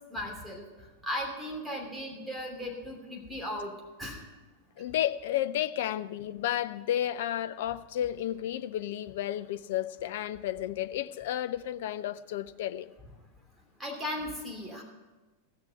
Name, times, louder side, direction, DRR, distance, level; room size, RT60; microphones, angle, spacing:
voice 1, 0.1-0.7 1.0-3.7 4.0-4.2 13.8-14.8, left 1 dB, 5° right, 2.9 m, -36 dB
voice 2, 4.8-12.9, left 12 dB, 55° left, 0.4 m, -32 dB
15.5 x 6.8 x 7.9 m
figure-of-eight pair, 90°, 0 cm